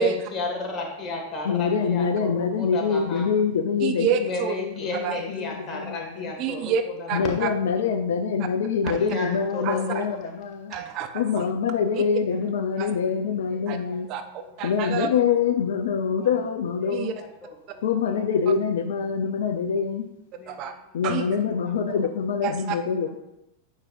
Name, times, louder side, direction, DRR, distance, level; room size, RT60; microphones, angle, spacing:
voice 1, 0.0-3.3 4.2-6.7 7.0-7.3 9.0-10.0 12.8-12.9 16.2-16.3 16.8-16.9 17.4-17.5 20.4-20.6, left 2 dB, 25° left, 0 dB, 1.9 m, -33 dB
voice 2, 1.4-4.2 4.6-6.3 7.1-10.7 11.1-14.1 14.6-17.1 17.8-20.1 20.9-23.1, left 6 dB, 60° left, 7 dB, 0.5 m, -25 dB
voice 3, 3.8-4.6 5.0-5.2 6.4-7.5 9.6-10.1 10.7-11.5 11.9-12.0 12.8-12.9 13.7-13.8 14.1-15.1 16.9-17.1 20.5-20.7 21.0-21.3 22.4-22.8, right 7 dB, 40° right, 8 dB, 0.5 m, -28 dB
9.5 x 6.3 x 2.6 m, 0.85 s
figure-of-eight pair, 90°, 0 cm